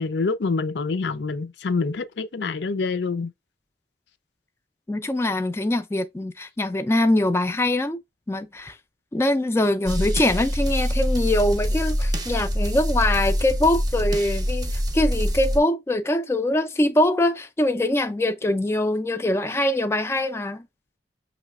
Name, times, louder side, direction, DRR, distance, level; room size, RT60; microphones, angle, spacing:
voice 1, 0.0-3.3, left 4 dB, 75° left, 0.5 m, -26 dB
voice 2, 4.9-8.0 8.3-8.8 9.1-20.6, left 1 dB, 15° left, 0.3 m, -23 dB
sound 1, 9.9-15.6, equal, 20° right, 0.6 m, -25 dB
5.5 x 3.0 x 2.3 m
head